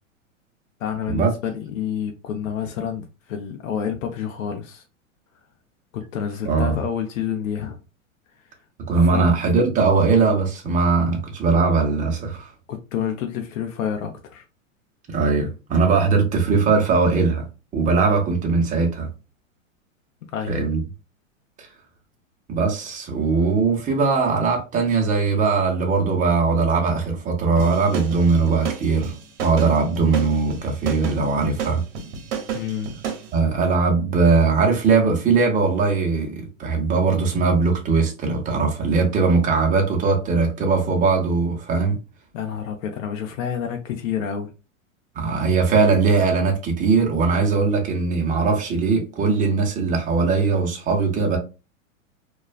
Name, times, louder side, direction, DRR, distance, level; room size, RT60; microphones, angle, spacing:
voice 1, 0.8-4.8 5.9-7.8 9.1-9.2 12.7-14.4 20.3-20.6 32.5-33.0 42.3-44.5, left 8 dB, 70° left, 0.6 m, -28 dB
voice 2, 6.4-6.8 8.9-12.5 15.1-17.5 17.7-19.1 20.5-20.8 21.6-21.7 22.5-31.8 33.3-42.0 45.1-51.4, right 4 dB, 20° right, 0.7 m, -20 dB
sound 1, 27.6-33.3, right 7 dB, 55° right, 0.9 m, -31 dB
2.3 x 2.2 x 2.4 m
hypercardioid pair, 120°, 41 cm